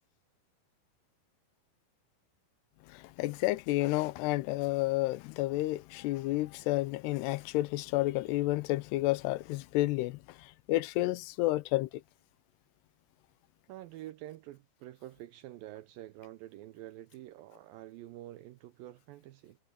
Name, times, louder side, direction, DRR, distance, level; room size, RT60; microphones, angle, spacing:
voice 1, 2.9-12.0, left 18 dB, 85° left, 2.8 m, -31 dB
voice 2, 13.7-19.6, right 14 dB, 85° right, 2.1 m, -47 dB
omnidirectional pair, 4.7 m